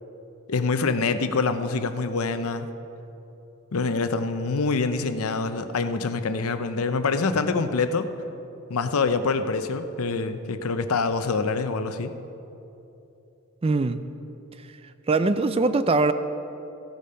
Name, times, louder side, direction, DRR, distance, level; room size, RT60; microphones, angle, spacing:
voice 1, 0.5-2.7 3.7-8.1 8.7-12.1, left 4 dB, 80° left, 10 dB, 0.7 m, -25 dB
voice 2, 13.6-14.0 15.1-16.1, right 3 dB, 25° right, 12 dB, 0.4 m, -22 dB
15.0 x 8.5 x 5.6 m, 3.0 s
head